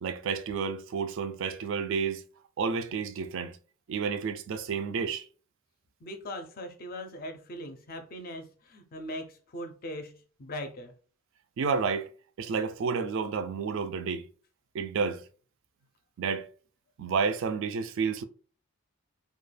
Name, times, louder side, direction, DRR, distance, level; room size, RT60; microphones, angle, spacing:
voice 1, 0.0-2.2 2.6-3.5 3.9-5.2 11.6-12.1 12.4-14.2 14.7-15.2 16.2-16.5 17.0-18.2, right 5 dB, 60° right, 0.3 m, -30 dB
voice 2, 6.0-10.9, left 1 dB, 45° left, 0.4 m, -40 dB
2.2 x 2.2 x 3.2 m
head